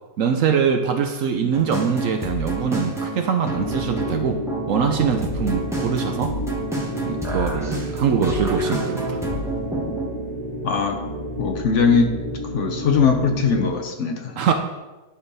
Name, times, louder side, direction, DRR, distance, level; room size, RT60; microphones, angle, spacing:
voice 1, 0.2-4.4 4.7-6.3 7.0-9.2 14.4-14.5, right 7 dB, 70° right, 5 dB, 0.7 m, -23 dB
sound 1, 1.5-10.1, right 1 dB, ahead, 0.7 m, -29 dB
sound 2, 3.4-13.8, equal, 30° right, 1.7 m, -31 dB
voice 2, 10.6-11.0 11.4-12.2 12.5-14.4, left 5 dB, 55° left, 4 dB, 0.8 m, -20 dB
11.0 x 3.8 x 4.0 m, 1.1 s
omnidirectional pair, 1.9 m